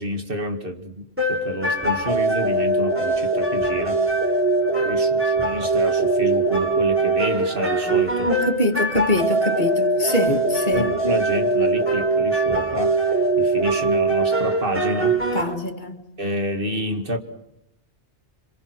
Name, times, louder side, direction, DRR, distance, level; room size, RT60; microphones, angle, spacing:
voice 1, 0.0-4.2 4.8-8.4 10.3-10.4 10.7-15.4 16.2-17.2, equal, 55° right, 2.5 m, -29 dB
sound 1, 1.2-15.4, right 2 dB, 10° right, 4.3 m, -22 dB
voice 2, 8.3-10.4 10.7-11.0 15.3-16.0, left 1 dB, 45° left, 2.0 m, -23 dB
27.5 x 25.0 x 6.3 m
omnidirectional pair, 1.1 m